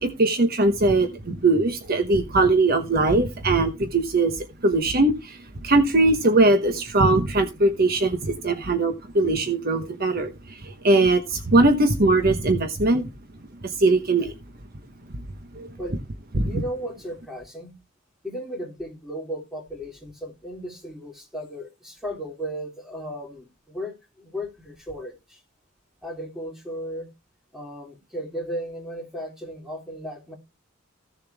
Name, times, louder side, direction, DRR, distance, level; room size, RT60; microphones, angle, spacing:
voice 1, 0.0-5.4 5.6-13.1 13.6-14.3 15.6-15.7 16.3-16.4, right 2 dB, 50° right, 1.1 m, -21 dB
voice 2, 16.3-17.8 18.2-25.4 26.0-27.1 27.5-30.3, equal, ahead, 3.5 m, -35 dB
15.5 x 7.1 x 3.5 m
head